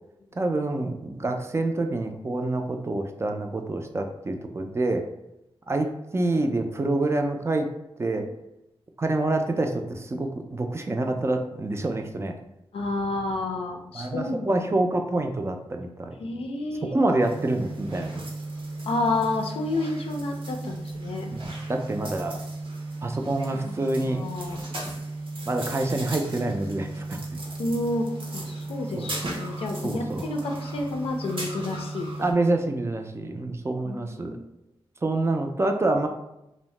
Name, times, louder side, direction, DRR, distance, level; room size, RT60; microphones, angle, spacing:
voice 1, 0.4-5.1 5.7-7.7 8.0-8.2 9.0-12.3 13.9-16.1 16.9-18.2 21.3-22.4 23.0-24.2 25.5-27.4 29.0-29.1 29.8-30.2 32.2-34.4 35.0-36.1, right 2 dB, 30° right, 4 dB, 0.3 m, -27 dB
voice 2, 12.7-14.6 16.2-17.1 18.9-21.3 23.5-23.7 24.0-24.6 27.6-32.1 33.8-34.4, left 2 dB, 85° left, 2 dB, 0.4 m, -30 dB
sound 1, 17.2-32.3, right 2 dB, 65° right, 0.6 m, -35 dB
2.7 x 2.0 x 3.1 m, 0.86 s
cardioid pair, 70°, 10 cm